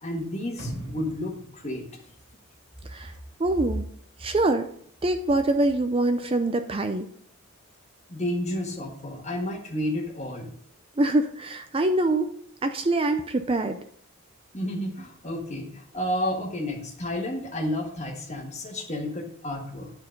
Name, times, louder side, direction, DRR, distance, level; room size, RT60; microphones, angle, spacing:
voice 1, 0.0-1.9 6.1-6.3 8.1-10.5 14.5-19.9, left 1 dB, 30° left, 1 dB, 1.6 m, -31 dB
sound 1, 0.6-2.7 3.1-3.2, right 1 dB, 50° right, 3.4 m, -40 dB
voice 2, 3.4-3.8 4.2-4.6 5.0-7.1 11.0-12.3 12.6-13.8, right 2 dB, 25° right, 8 dB, 0.5 m, -24 dB
11.5 x 4.4 x 5.3 m, 0.63 s
head